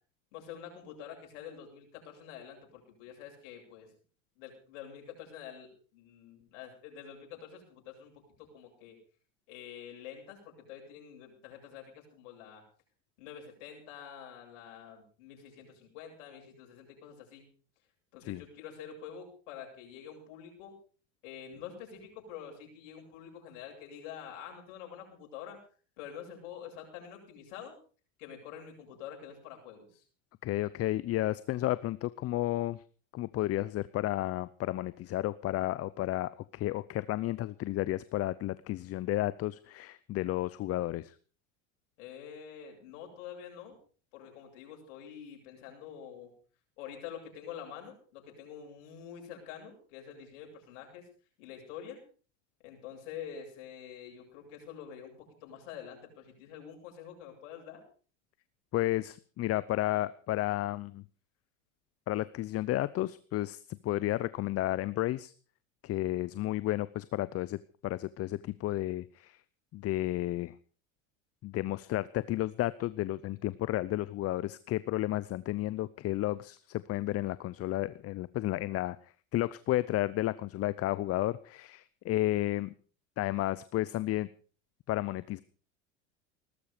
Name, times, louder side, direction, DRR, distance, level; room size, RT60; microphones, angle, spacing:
voice 1, 0.3-3.9 4.4-9.0 9.5-12.6 13.2-17.5 18.1-20.7 21.2-25.6 26.0-27.8 28.2-30.0 42.0-43.8 44.1-46.3 46.8-51.0 51.4-52.0 52.6-57.8, left 8 dB, 70° left, 2 dB, 7.9 m, -47 dB
voice 2, 30.4-32.8 33.1-41.1 58.7-61.0 62.1-65.3 65.8-69.4 69.7-70.5 71.4-79.0 79.3-82.7 83.2-84.3 84.9-85.4, left 15 dB, 40° left, 17 dB, 0.7 m, -32 dB
18.5 x 13.0 x 5.1 m, 0.40 s
hypercardioid pair, 100°, 38 cm